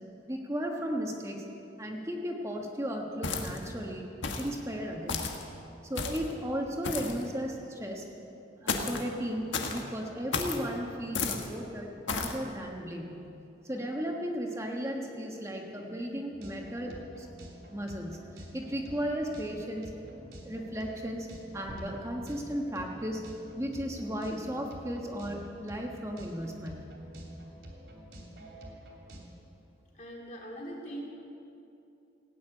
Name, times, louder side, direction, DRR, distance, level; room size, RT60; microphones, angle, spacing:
voice 1, 0.3-1.4 1.8-4.0 4.4-5.3 5.8-8.1 8.6-13.2 13.6-17.3 17.7-19.9 20.4-21.3 21.5-23.2 23.6-26.8, equal, 15° right, 0 dB, 1.3 m, -35 dB
sound 1, 3.2-3.7 4.2-4.5 5.1-5.4 5.9-6.3 6.8-7.2 8.7-9.0 9.5-9.8 10.3-10.6 11.1-11.5 12.1-12.4, left 4 dB, 90° left, 1.5 m, -32 dB
sound 2, 16.3-29.2, equal, 65° right, 2.9 m, -48 dB
voice 2, 29.9-31.1, right 1 dB, 40° left, -2 dB, 2.7 m, -41 dB
17.0 x 9.0 x 8.9 m, 2.7 s
head